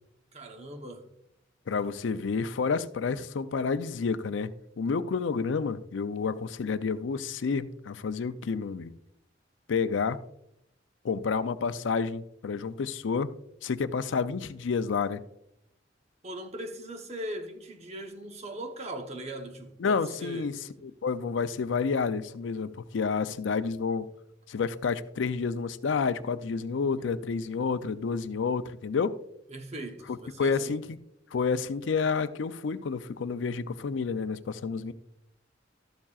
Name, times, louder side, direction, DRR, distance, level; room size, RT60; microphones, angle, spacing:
voice 1, 0.3-1.1 16.2-20.5 29.5-30.8, right 1 dB, 35° right, 0.9 m, -39 dB
voice 2, 1.7-4.5 4.8-8.9 9.7-10.2 11.0-13.3 13.6-15.2 19.8-24.1 24.5-29.1 30.4-30.9 31.3-34.9, left 5 dB, 75° left, 0.4 m, -29 dB
12.5 x 7.2 x 2.4 m
head